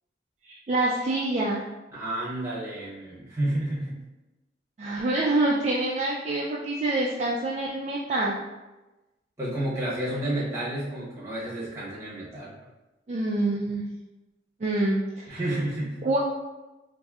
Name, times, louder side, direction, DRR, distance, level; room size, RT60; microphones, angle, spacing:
voice 1, 0.4-1.6 4.8-8.4 13.1-13.8 14.6-15.4 16.0-16.2, right 2 dB, 35° right, -4 dB, 0.3 m, -26 dB
voice 2, 1.9-4.0 9.4-12.5 15.3-16.1, right 1 dB, 15° right, -7 dB, 1.0 m, -30 dB
4.1 x 2.6 x 2.4 m, 1.1 s
head